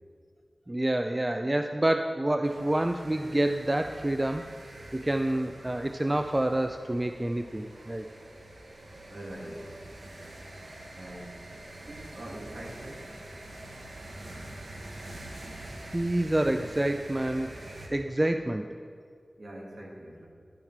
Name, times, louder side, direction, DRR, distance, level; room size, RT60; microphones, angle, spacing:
voice 1, 0.7-4.5 4.9-8.1 15.9-17.6 17.9-18.7, right 1 dB, 25° right, 7 dB, 0.3 m, -28 dB
sound 1, 2.4-17.9, right 1 dB, 80° right, 1.0 m, -45 dB
voice 2, 9.1-9.9 10.9-11.5 11.9-13.1 19.4-20.3, right 1 dB, 65° right, -3 dB, 1.8 m, -43 dB
11.5 x 5.6 x 4.5 m, 2.2 s
wide cardioid pair, 70°, 0 cm